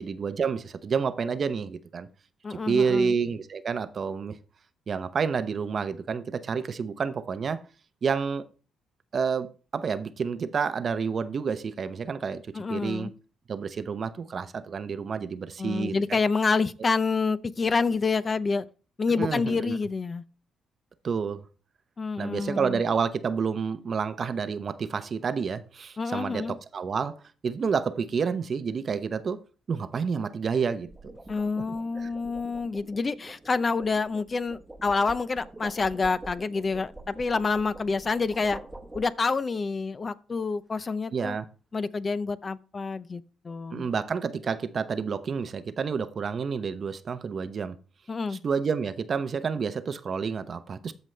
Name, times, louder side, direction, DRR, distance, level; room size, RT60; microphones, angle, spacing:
voice 1, 0.0-2.1 2.5-4.4 4.9-7.6 8.0-8.5 9.1-13.1 13.5-16.2 19.1-19.8 21.0-21.5 22.2-29.4 29.7-31.1 32.0-32.1 41.1-41.4 43.7-47.8 48.3-50.9, right 6 dB, 45° right, 0.7 m, -29 dB
voice 2, 2.4-3.1 12.5-13.1 15.6-18.7 19.0-20.2 22.0-22.8 26.0-26.5 31.3-38.6 38.9-41.4 41.7-43.9 48.1-48.4, left 4 dB, 35° left, 0.6 m, -28 dB
sound 1, 25.1-25.5 30.6-39.5, right 2 dB, 10° right, 1.1 m, -46 dB
13.5 x 5.3 x 3.3 m
cardioid pair, 90°, 0 cm